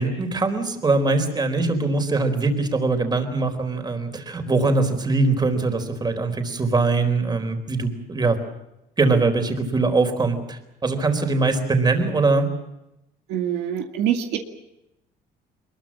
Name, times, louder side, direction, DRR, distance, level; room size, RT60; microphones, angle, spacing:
voice 1, 0.0-8.4 9.0-12.5, right 3 dB, 25° right, 7 dB, 4.3 m, -22 dB
voice 2, 13.3-14.4, right 10 dB, 90° right, 4 dB, 2.2 m, -24 dB
23.5 x 22.0 x 7.4 m, 0.87 s
cardioid pair, 110°, 17 cm